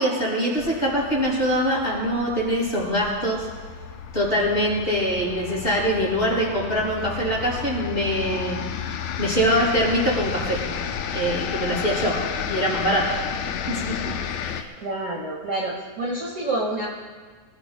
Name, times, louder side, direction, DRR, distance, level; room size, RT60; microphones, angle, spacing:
voice 1, 0.0-3.5 4.1-8.6 8.9-10.6 11.1-12.2 12.4-13.1 13.7-14.0 14.4-14.7, equal, 15° left, -5 dB, 5.9 m, -23 dB
sound 1, 0.6-14.6, left 8 dB, 80° left, 1.6 m, -32 dB
voice 2, 14.8-16.9, right 2 dB, 35° right, -4 dB, 1.3 m, -28 dB
25.5 x 17.5 x 2.3 m, 1.5 s
omnidirectional pair, 4.2 m